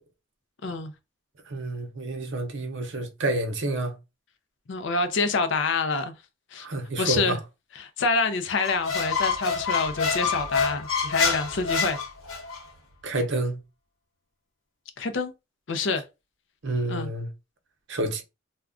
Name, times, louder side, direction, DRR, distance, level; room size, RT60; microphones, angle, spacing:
voice 1, 1.5-4.0 6.6-7.4 13.0-13.6 16.6-17.3 17.9-18.2, right 2 dB, 60° right, 0.7 m, -29 dB
voice 2, 4.7-6.1 6.5-6.7 7.0-7.4 7.8-12.0 15.0-15.3 15.7-16.0 16.9-17.1, left 4 dB, 60° left, 0.5 m, -27 dB
Squeak, 8.5-12.6, left 5 dB, 80° left, 1.0 m, -27 dB
2.3 x 2.2 x 3.6 m
head